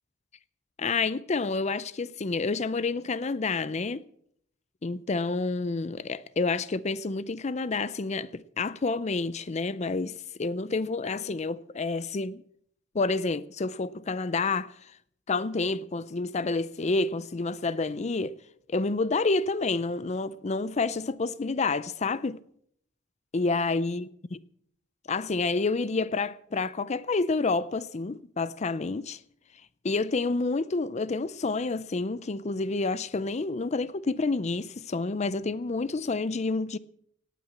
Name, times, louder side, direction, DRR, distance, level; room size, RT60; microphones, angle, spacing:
voice 1, 0.8-4.0 4.8-12.4 12.9-14.9 15.3-18.3 18.7-22.4 23.3-24.1 25.1-29.2 29.8-36.8, left 3 dB, 35° left, 0.5 m, -29 dB
17.5 x 9.3 x 7.2 m
head